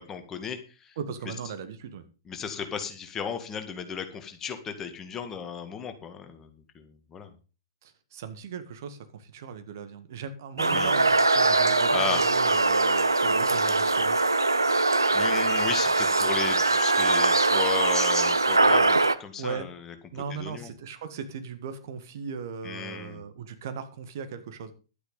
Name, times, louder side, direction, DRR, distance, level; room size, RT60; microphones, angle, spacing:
voice 1, 0.0-1.0 1.3-1.4 2.3-7.3 10.6-10.9 11.9-12.2 15.1-20.7 22.6-23.2, left 7 dB, 20° left, 7 dB, 2.1 m, -35 dB
voice 2, 1.0-2.0 7.8-14.2 19.4-19.7 20.1-24.7, right 6 dB, 50° right, 9 dB, 1.8 m, -37 dB
sound 1, 10.6-19.1, right 3 dB, 80° right, 0.9 m, -22 dB
12.0 x 9.7 x 5.3 m, 0.34 s
figure-of-eight pair, 110°, 2 cm